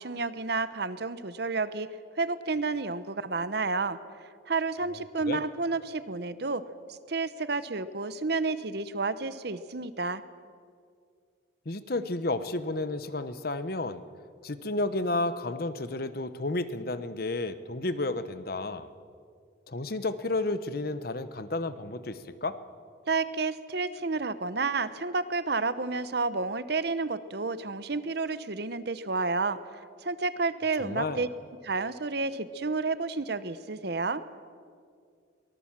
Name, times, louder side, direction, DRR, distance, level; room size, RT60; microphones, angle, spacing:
voice 1, 0.0-1.9 2.1-4.0 4.5-6.6 6.9-10.2 23.1-31.3 31.6-34.2, right 3 dB, 55° right, 14 dB, 0.9 m, -30 dB
voice 2, 11.7-14.0 14.4-18.9 19.7-22.6 30.8-31.2, left 2 dB, 50° left, 13 dB, 1.0 m, -31 dB
23.5 x 19.0 x 7.4 m, 2.2 s
head